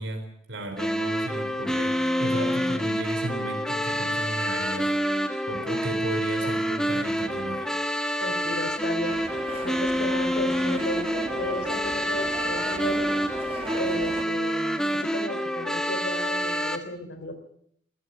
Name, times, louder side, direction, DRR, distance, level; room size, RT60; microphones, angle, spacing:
voice 1, 0.0-7.7, right 1 dB, 85° right, 5 dB, 3.7 m, -35 dB
sound 1, 0.8-16.8, equal, 5° left, 1.5 m, -27 dB
voice 2, 8.2-9.2 9.6-13.1 13.7-17.3, left 1 dB, 65° left, 9 dB, 3.8 m, -34 dB
sound 2, 9.0-14.2, right 2 dB, 30° right, 1.6 m, -38 dB
20.0 x 14.0 x 9.1 m, 0.70 s
head